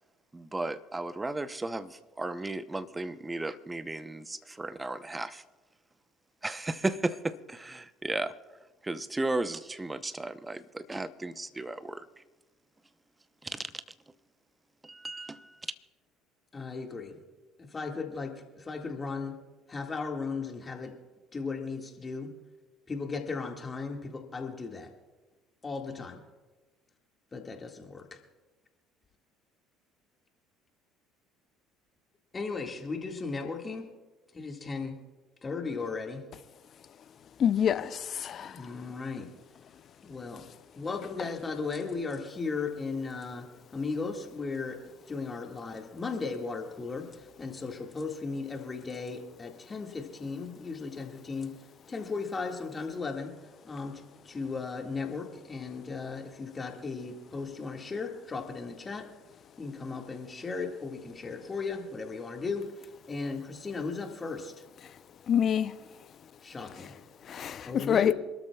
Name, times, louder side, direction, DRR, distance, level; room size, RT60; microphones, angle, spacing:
voice 1, 0.3-5.4 6.4-8.3 8.8-12.1 13.4-13.7 14.8-15.7, right 2 dB, 15° right, 0.9 m, -35 dB
voice 2, 16.5-17.2 17.6-19.4 19.7-21.0 21.3-22.4 22.9-24.9 25.6-26.2 27.3-28.2 32.3-33.9 34.3-35.0 35.4-36.3 38.4-39.3 40.0-40.5 40.8-51.6 51.9-53.4 53.6-59.1 59.6-64.6 66.4-67.0 67.6-68.1, left 4 dB, 30° left, 2.0 m, -36 dB
voice 3, 37.4-38.6 65.3-65.7 67.3-68.1, left 9 dB, 45° left, 0.7 m, -26 dB
27.0 x 13.0 x 2.4 m
hypercardioid pair, 60°, 0 cm